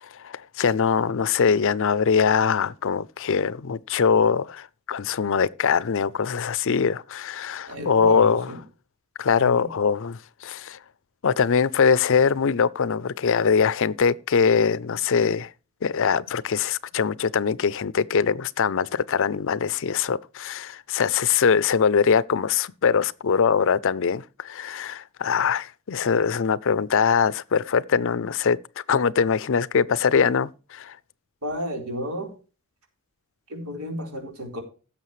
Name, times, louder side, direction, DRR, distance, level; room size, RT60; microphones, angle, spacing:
voice 1, 0.2-8.5 9.2-10.8 11.2-15.5 15.8-28.6 28.9-31.0, left 6 dB, 60° left, 0.5 m, -22 dB
voice 2, 7.7-8.6 9.4-9.7 31.4-32.3 33.5-34.6, equal, 90° right, 4.2 m, -32 dB
16.5 x 7.3 x 3.2 m
head